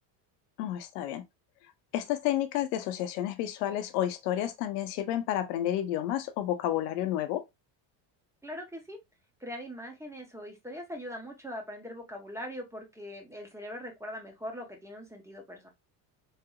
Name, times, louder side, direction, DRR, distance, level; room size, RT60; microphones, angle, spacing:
voice 1, 0.6-1.2 1.9-7.4, left 12 dB, 90° left, 0.7 m, -30 dB
voice 2, 8.4-9.0 9.4-15.7, equal, 5° right, 1.1 m, -41 dB
3.2 x 2.9 x 2.3 m
supercardioid pair, 100°, 47 cm